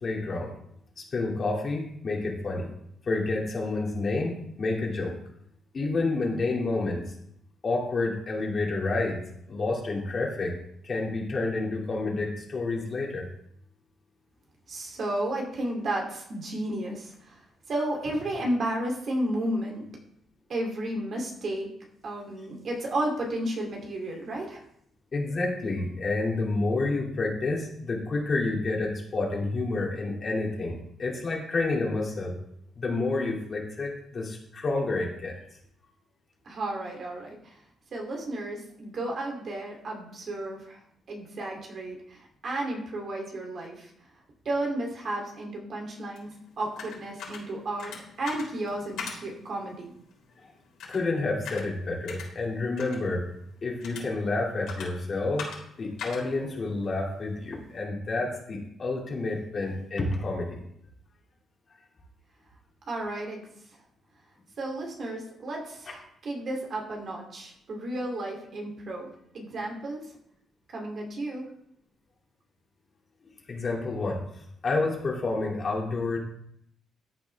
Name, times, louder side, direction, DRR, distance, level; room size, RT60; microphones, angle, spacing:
voice 1, 0.0-0.6 1.0-2.7 3.1-5.2 5.7-7.0 7.6-9.2 9.5-10.6 10.8-13.3 25.1-32.4 32.8-35.4 50.4-50.5 50.9-53.3 53.6-55.5 55.8-60.6 73.5-74.2 74.6-76.2, left 3 dB, 35° left, -1 dB, 2.7 m, -29 dB
voice 2, 14.7-17.4 17.7-19.8 20.5-21.7 22.0-24.6 36.4-37.6 37.9-40.8 41.1-43.9 44.4-46.3 46.6-49.9 62.9-63.4 64.6-69.1 69.3-70.0 70.7-71.5, right 1 dB, 45° right, 0 dB, 3.1 m, -33 dB
sound 1, 46.2-57.8, left 5 dB, 90° left, 4.8 m, -44 dB
14.0 x 8.9 x 3.5 m, 0.72 s
cardioid pair, 140°, 0 cm